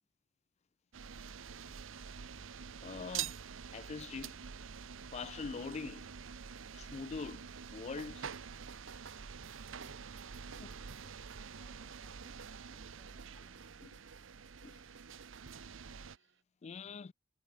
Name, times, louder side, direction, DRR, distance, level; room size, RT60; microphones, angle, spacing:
sound 1, 0.9-16.2, right 7 dB, 85° right, 0.8 m, -47 dB
voice 1, 2.8-3.3 3.7-4.3 5.1-6.1 6.7-8.3 10.6-10.7 13.8-13.9 14.6-14.8 16.6-17.1, left 5 dB, 35° left, 0.4 m, -43 dB
sound 2, 6.5-11.5 11.8-16.4, right 5 dB, 65° right, 1.1 m, -59 dB
voice 2, 9.8-9.9, equal, 5° right, 3.2 m, -68 dB
head